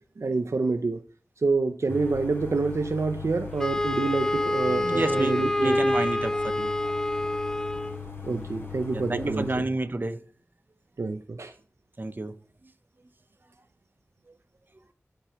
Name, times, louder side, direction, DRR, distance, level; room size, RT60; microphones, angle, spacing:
voice 1, 0.2-1.0 1.4-5.8 8.2-9.6 11.0-11.5, right 3 dB, 70° right, 0.5 m, -27 dB
sound 1, 1.9-9.6, left 5 dB, 50° left, 2.3 m, -39 dB
Wind instrument woodwind instrument, 3.6-8.0, left 1 dB, 10° left, 0.4 m, -26 dB
voice 2, 4.7-6.7 8.9-10.2 12.0-12.3, right 2 dB, 40° right, 0.8 m, -30 dB
13.0 x 4.5 x 3.0 m
wide cardioid pair, 65°, 5 cm